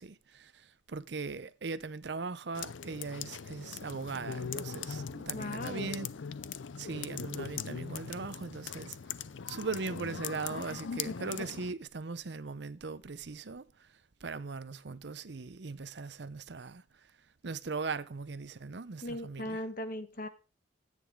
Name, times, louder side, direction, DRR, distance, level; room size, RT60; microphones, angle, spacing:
voice 1, 0.0-6.1 6.8-9.0 9.5-17.1 17.4-19.6, right 4 dB, 65° right, 0.7 m, -39 dB
sound 1, 2.6-11.7, left 6 dB, 85° left, 0.6 m, -40 dB
voice 2, 5.3-6.0 19.0-20.3, left 1 dB, 50° left, 1.3 m, -38 dB
13.5 x 9.1 x 3.6 m
head